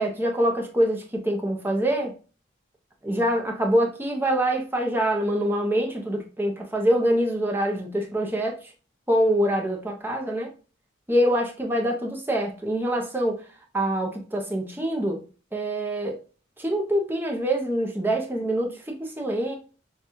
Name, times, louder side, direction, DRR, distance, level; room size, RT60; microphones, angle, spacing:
voice 1, 0.0-2.1 3.0-8.6 9.1-10.5 11.1-13.4 13.7-15.2 15.5-16.2 16.6-19.6, right 1 dB, 10° right, 0.8 m, -25 dB
5.9 x 2.4 x 2.7 m
head